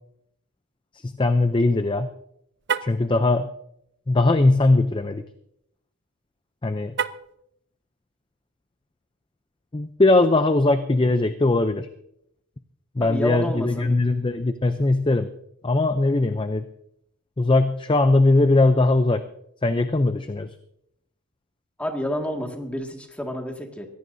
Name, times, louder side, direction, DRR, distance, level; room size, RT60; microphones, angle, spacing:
voice 1, 1.0-2.1 2.8-3.5 4.1-5.2 6.6-6.9 9.7-11.9 13.0-15.3 15.6-16.6 17.4-19.2 19.6-20.5, left 2 dB, 20° left, 9 dB, 0.5 m, -20 dB
Car, 2.6-3.1 6.9-7.4, right 7 dB, 50° right, 0.6 m, -28 dB
voice 2, 13.0-13.9 21.8-23.9, equal, 5° left, 2 dB, 1.9 m, -29 dB
23.0 x 17.0 x 2.7 m, 0.76 s
head